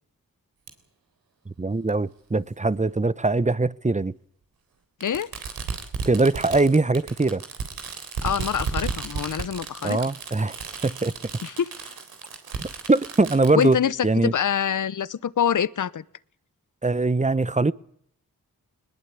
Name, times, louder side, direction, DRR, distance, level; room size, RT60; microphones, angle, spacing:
Fireworks, 0.7-0.8 1.9-2.0 3.3-3.4 5.0-13.7, right 5 dB, 90° right, 3.7 m, -34 dB
voice 1, 1.6-4.1 6.0-7.4 9.8-10.6 10.8-11.1 12.6-14.3 16.8-17.7, right 3 dB, 20° right, 1.0 m, -22 dB
voice 2, 8.2-10.0 11.4-11.7 13.5-14.0 14.2-16.0, left 8 dB, 60° left, 1.0 m, -25 dB
21.0 x 21.0 x 8.5 m
cardioid pair, 45°, 35 cm